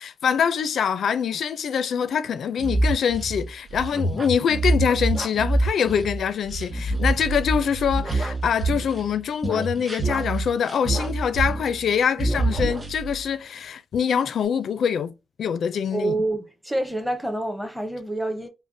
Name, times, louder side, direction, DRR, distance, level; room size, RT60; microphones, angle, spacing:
voice 1, 0.0-15.1 15.4-16.2, left 7 dB, 75° left, 0.4 m, -24 dB
sound 1, 2.6-9.1 9.4-11.9 12.2-13.3, right 2 dB, 20° right, 2.1 m, -26 dB
voice 2, 15.9-18.5, right 2 dB, ahead, 0.8 m, -27 dB
5.3 x 2.1 x 2.6 m
wide cardioid pair, 150°, 0 cm